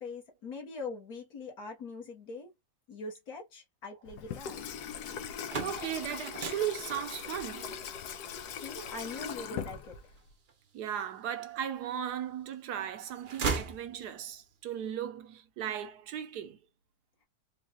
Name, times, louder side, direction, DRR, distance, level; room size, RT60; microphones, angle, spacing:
voice 1, 0.0-2.5 2.9-4.6 8.5-10.0, left 3 dB, 65° left, 1.8 m, -42 dB
Water tap faucet / Sink (filling or washing), 4.1-10.3, left 7 dB, 80° left, 1.3 m, -40 dB
sound 1, 5.3-11.2 11.7-12.5 12.8-14.4, right 5 dB, 50° right, 0.6 m, -39 dB
voice 2, 5.6-7.8 10.7-16.6, right 10 dB, 75° right, 1.3 m, -37 dB
4.4 x 2.3 x 2.9 m
omnidirectional pair, 1.8 m